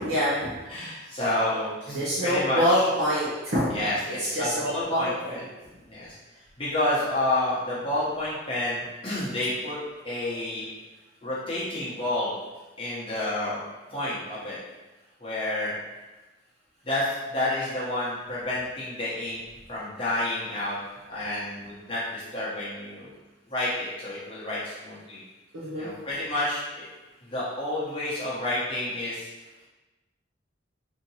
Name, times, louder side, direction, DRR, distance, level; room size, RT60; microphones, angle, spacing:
voice 1, 0.0-0.5 1.1-1.2 1.9-3.7 4.1-4.5 4.9-5.4 25.5-25.9, equal, 85° right, -8 dB, 0.8 m, -25 dB
voice 2, 0.7-2.9 3.7-5.4 5.9-6.2 6.6-9.8 10.0-10.7 11.2-12.3 12.8-13.6 13.9-14.6 15.2-15.8 16.9-19.4 19.7-20.8 21.1-23.1 23.5-25.2 25.8-26.9 27.3-29.3, left 1 dB, 30° left, -9 dB, 0.8 m, -29 dB
4.2 x 2.7 x 2.8 m, 1.1 s
head